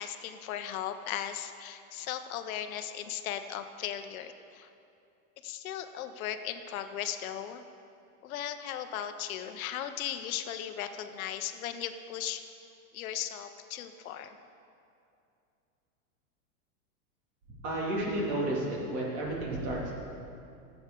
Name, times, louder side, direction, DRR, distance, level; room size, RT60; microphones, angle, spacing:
voice 1, 0.0-4.7 5.4-7.6 8.2-12.4 12.9-14.4, left 10 dB, 70° left, 9 dB, 0.7 m, -37 dB
voice 2, 17.6-19.9, right 1 dB, 40° right, -4 dB, 2.4 m, -31 dB
15.0 x 7.9 x 3.7 m, 2.6 s
supercardioid pair, 165°, 43 cm